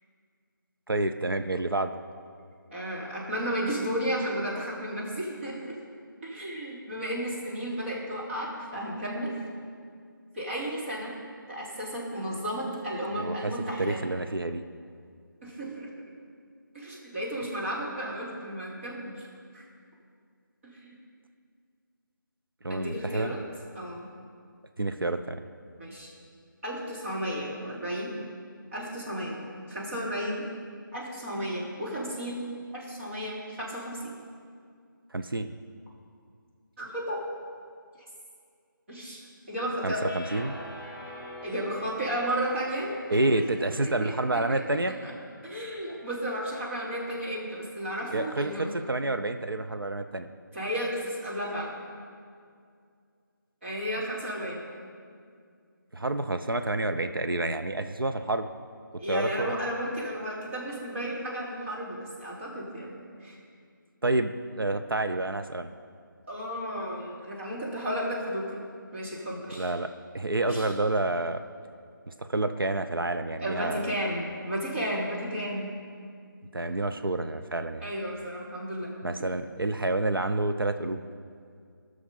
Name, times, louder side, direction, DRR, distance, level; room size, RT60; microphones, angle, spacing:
voice 1, 0.9-2.0 13.2-13.5 13.8-14.6 22.6-23.3 24.8-25.4 35.1-35.5 39.8-40.5 43.1-44.9 48.1-50.3 55.9-58.5 59.1-59.6 64.0-65.7 69.5-71.4 72.1-73.9 76.5-77.9 79.0-81.0, right 2 dB, 90° right, 8 dB, 0.7 m, -29 dB
voice 2, 2.7-5.7 6.2-9.3 10.3-11.2 11.5-14.0 15.4-15.9 16.7-19.1 19.5-19.6 20.6-21.0 22.7-23.4 23.7-24.1 25.8-26.1 26.6-28.2 28.7-29.4 29.7-30.5 30.9-32.4 32.7-34.1 36.8-37.2 38.9-40.0 41.4-43.0 43.8-44.6 45.0-45.1 45.4-48.6 50.5-51.7 53.6-54.6 59.0-63.4 66.3-68.6 68.9-69.7 70.4-70.7 73.4-75.7 77.8-78.9, equal, 35° right, -5 dB, 3.2 m, -33 dB
sound 1, 40.0-46.3, equal, 5° right, 0.6 m, -46 dB
18.0 x 6.4 x 5.5 m, 2.2 s
figure-of-eight pair, 165°, 11 cm